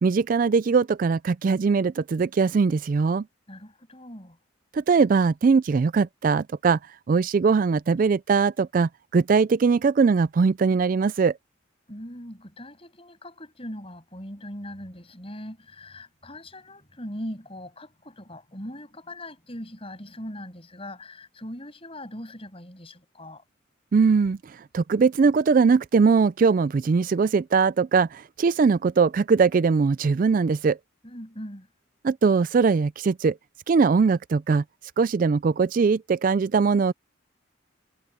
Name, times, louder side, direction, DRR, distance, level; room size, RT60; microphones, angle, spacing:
voice 1, 0.0-3.2 4.7-6.8 7.1-11.3 23.9-24.4 24.7-30.8 32.0-33.3 33.7-34.6 35.0-36.9, right 5 dB, 40° right, 0.3 m, -21 dB
voice 2, 3.5-4.4 11.9-23.4 31.0-31.7, left 1 dB, 30° left, 8.0 m, -40 dB
head